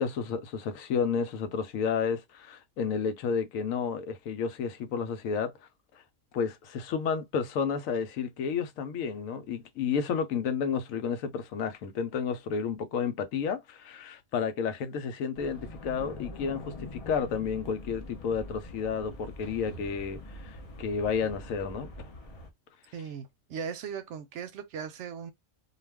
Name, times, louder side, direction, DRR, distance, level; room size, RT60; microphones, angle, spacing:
voice 1, 0.0-5.5 6.3-22.1, left 6 dB, 90° left, 1.0 m, -31 dB
sound 1, 15.4-22.5, left 1 dB, 40° left, 0.5 m, -44 dB
voice 2, 22.9-25.3, right 6 dB, 70° right, 0.8 m, -38 dB
2.3 x 2.3 x 3.3 m
omnidirectional pair, 1.4 m